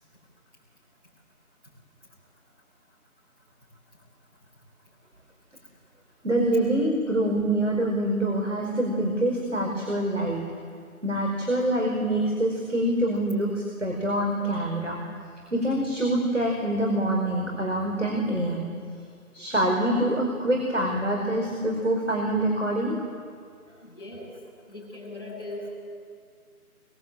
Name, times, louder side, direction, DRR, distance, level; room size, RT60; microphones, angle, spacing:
voice 1, 6.2-10.4 11.0-15.0 15.5-18.7 19.3-23.0, right 1 dB, 50° right, 0 dB, 4.8 m, -25 dB
voice 2, 23.8-24.3 24.7-25.8, left 1 dB, 5° right, -16 dB, 6.9 m, -39 dB
24.5 x 22.5 x 8.9 m, 2.2 s
figure-of-eight pair, 175°, 45 cm